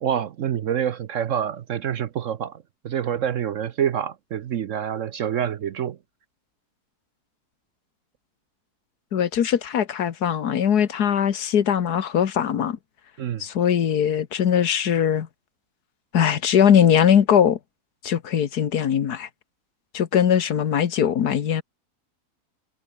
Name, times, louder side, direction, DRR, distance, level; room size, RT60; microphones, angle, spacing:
voice 1, 0.0-6.0 13.2-13.4, right 9 dB, 60° right, 1.0 m, -27 dB
voice 2, 9.1-12.8 13.4-15.3 16.1-17.6 18.0-19.3 19.9-21.6, left 8 dB, 85° left, 1.8 m, -20 dB
omnidirectional pair, 1.6 m